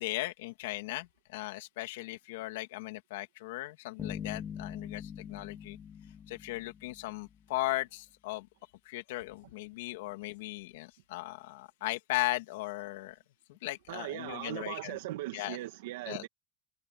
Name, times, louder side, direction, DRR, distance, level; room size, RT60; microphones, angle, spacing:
voice 1, 0.0-5.8 6.3-8.5 8.8-13.2 13.5-15.0 15.3-15.6 16.1-16.2, left 19 dB, 85° left, 2.4 m, -37 dB
sound 1, 4.0-7.4, left 8 dB, 25° left, 2.2 m, -43 dB
voice 2, 13.9-16.3, right 16 dB, 90° right, 1.5 m, -39 dB
supercardioid pair, 160°, 0 cm